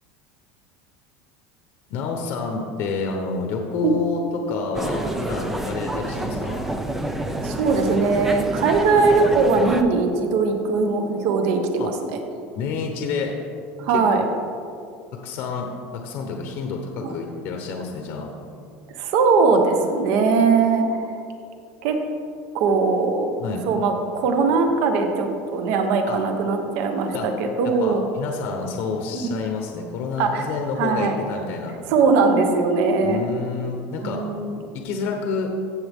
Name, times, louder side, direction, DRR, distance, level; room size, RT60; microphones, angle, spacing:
voice 1, 1.9-6.6 11.8-11.9 12.5-13.3 13.9-14.4 15.2-15.7 16.0-18.3 23.4-23.7 26.1-26.2 27.1-27.3 27.6-31.8 33.0-34.2 34.7-35.5, left 4 dB, 45° left, 2 dB, 0.9 m, -29 dB
sound 1, 4.7-9.8, right 1 dB, 5° right, 0.4 m, -28 dB
voice 2, 7.4-11.9 13.8-14.2 17.0-17.1 18.9-21.1 21.8-22.0 22.5-23.3 23.7-28.0 30.2-30.5 30.8-31.1 31.9-33.3 34.0-34.6, right 4 dB, 55° right, 5 dB, 1.1 m, -20 dB
15.5 x 7.3 x 3.6 m, 2.4 s
cardioid pair, 175°, 5 cm